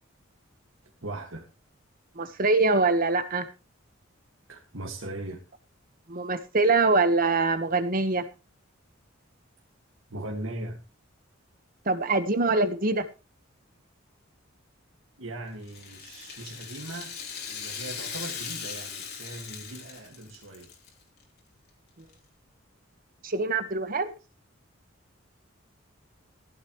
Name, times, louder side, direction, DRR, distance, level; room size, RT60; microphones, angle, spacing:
voice 1, 1.0-1.5 4.5-5.4 10.1-10.8 15.2-17.2 17.5-20.7, right 1 dB, 75° right, 1.9 m, -39 dB
voice 2, 2.2-3.5 6.1-8.2 11.9-13.1 23.2-24.1, right 3 dB, 45° right, 1.3 m, -24 dB
Rattle (instrument), 15.6-20.9 21.2-21.3 22.1-22.2, left 6 dB, 50° left, 3.3 m, -39 dB
15.0 x 11.5 x 3.1 m
head